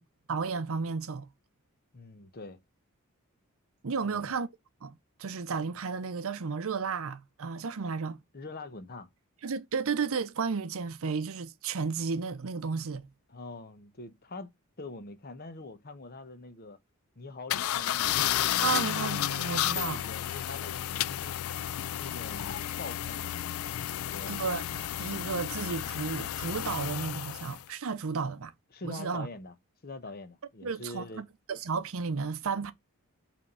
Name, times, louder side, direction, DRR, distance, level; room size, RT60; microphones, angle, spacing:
voice 1, 0.3-1.3 3.8-4.5 4.8-4.9 5.2-8.2 9.4-13.1 18.6-20.0 24.3-24.6 25.0-28.5 28.8-29.3 30.6-32.7, right 5 dB, 65° right, 0.6 m, -33 dB
voice 2, 1.9-2.6 4.0-4.4 8.3-9.1 13.3-14.5 14.8-16.8 17.2-18.1 19.7-21.4 22.0-23.3 23.9-24.4 28.7-29.5 29.8-31.3, left 3 dB, 45° left, 1.0 m, -44 dB
sound 1, 17.5-27.6, left 12 dB, 65° left, 0.4 m, -32 dB
5.6 x 3.5 x 5.4 m
head